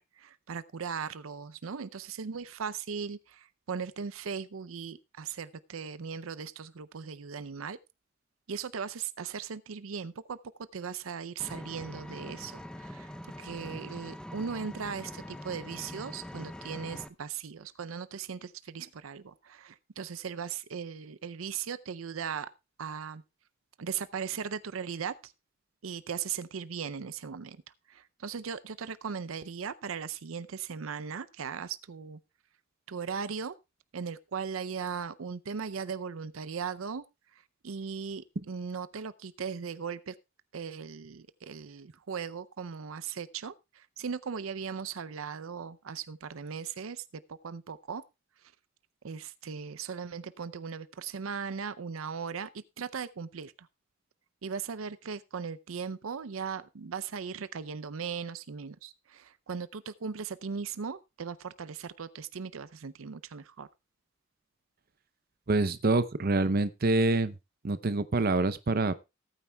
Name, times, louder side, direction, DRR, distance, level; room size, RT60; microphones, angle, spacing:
voice 1, 0.0-7.8 8.5-10.4 10.7-13.1 13.4-22.5 22.8-23.2 23.8-25.3 25.8-27.6 27.9-32.2 32.9-33.6 33.9-37.0 37.6-40.1 40.5-47.0 47.3-48.0 49.0-52.5 52.8-53.5 54.4-63.7, right 6 dB, 90° right, 0.6 m, -38 dB
Vehicle, 11.4-17.1, left 1 dB, 5° left, 0.6 m, -43 dB
voice 2, 65.5-67.3 67.6-69.0, right 2 dB, 50° right, 0.7 m, -26 dB
18.5 x 9.1 x 2.3 m
head